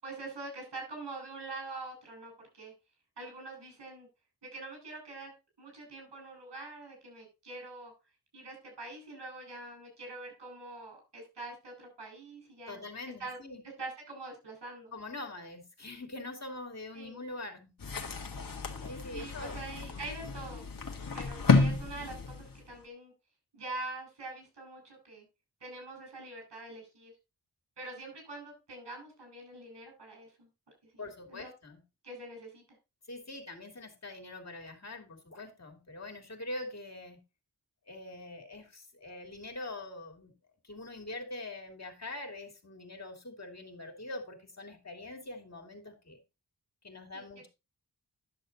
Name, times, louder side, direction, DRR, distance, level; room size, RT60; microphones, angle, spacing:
voice 1, 0.0-2.7 3.2-4.1 4.4-7.9 8.3-12.8 13.2-13.4 13.6-14.9 16.9-17.3 19.1-20.7 21.1-23.1 23.5-25.3 25.6-27.1 27.8-30.5 30.9-31.0 31.3-31.5 32.0-32.6 47.1-47.2, right 2 dB, 85° right, 2 dB, 6.2 m, -44 dB
voice 2, 12.7-13.6 14.9-17.7 18.9-19.6 19.9-20.1 31.0-31.8 33.1-37.2 37.9-40.3 40.6-46.2 46.8-47.5, left 2 dB, 40° left, 3 dB, 2.6 m, -43 dB
sound 1, 17.8-22.8, left 4 dB, 55° left, 1.7 m, -31 dB
11.0 x 6.6 x 3.9 m, 0.27 s
wide cardioid pair, 70°, 41 cm